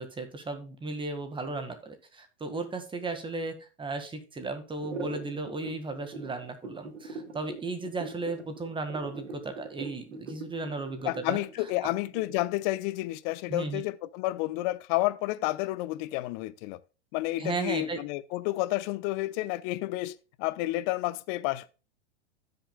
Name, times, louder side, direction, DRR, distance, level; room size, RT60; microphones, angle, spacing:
voice 1, 0.0-11.4 13.5-13.8 17.4-18.0, right 3 dB, 15° right, 1.7 m, -35 dB
sound 1, 4.8-12.6, right 4 dB, 85° right, 2.6 m, -41 dB
voice 2, 11.0-16.8 17.1-21.7, left 18 dB, 45° left, 0.8 m, -30 dB
15.5 x 6.6 x 2.3 m
hypercardioid pair, 110°, 35 cm